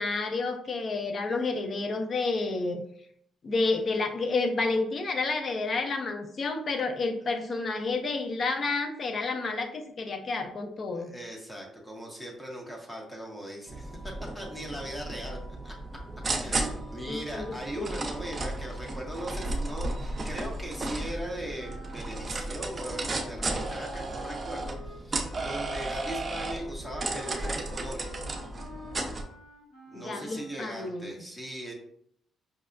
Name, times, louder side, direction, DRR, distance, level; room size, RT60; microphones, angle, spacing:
voice 1, 0.0-2.8 3.4-11.1 17.1-17.9 29.9-31.1, left 3 dB, 45° left, 6 dB, 0.5 m, -30 dB
voice 2, 10.9-15.4 15.6-15.7 16.4-28.1 29.9-31.7, equal, 10° left, 0 dB, 0.8 m, -39 dB
sound 1, 13.7-29.2, right 2 dB, 30° right, 0.6 m, -34 dB
sound 2, 21.6-30.7, left 2 dB, 85° left, 0.9 m, -49 dB
5.2 x 2.1 x 2.5 m, 0.67 s
cardioid pair, 90°, 0 cm